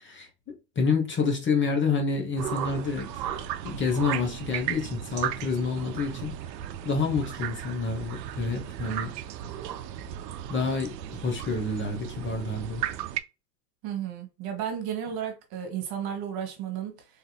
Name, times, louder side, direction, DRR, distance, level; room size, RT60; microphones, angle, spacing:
voice 1, 0.0-3.1 3.6-6.4 6.8-9.2 10.5-12.8, left 4 dB, 25° left, 0.9 m, -28 dB
sound 1, 2.4-13.2, right 11 dB, 90° right, 0.6 m, -35 dB
voice 2, 13.8-17.1, right 9 dB, 50° right, 1.4 m, -33 dB
3.7 x 2.8 x 2.2 m
supercardioid pair, 110°, 48 cm